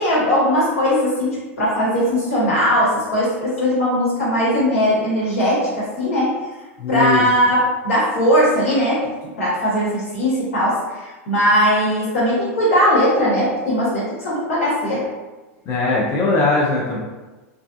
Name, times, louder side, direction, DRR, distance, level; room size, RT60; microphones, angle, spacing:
voice 1, 0.0-6.3 6.9-15.0, equal, 85° left, -7 dB, 1.3 m, -19 dB
voice 2, 6.8-7.2 15.7-17.0, left 2 dB, 45° left, -4 dB, 0.5 m, -19 dB
2.4 x 2.2 x 2.6 m, 1.2 s
hypercardioid pair, 100°, 8 cm